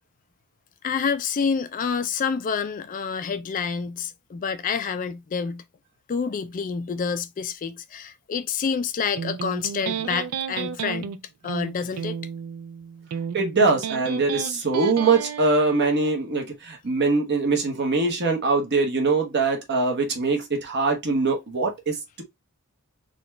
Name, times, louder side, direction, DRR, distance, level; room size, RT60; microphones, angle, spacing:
voice 1, 0.8-5.6 6.1-11.1 11.4-12.2, left 6 dB, 35° left, 0.3 m, -28 dB
Electric guitar, 9.2-16.1, right 7 dB, 80° right, 0.4 m, -33 dB
voice 2, 13.3-22.2, right 3 dB, 50° right, 1.0 m, -23 dB
3.9 x 2.3 x 3.1 m
head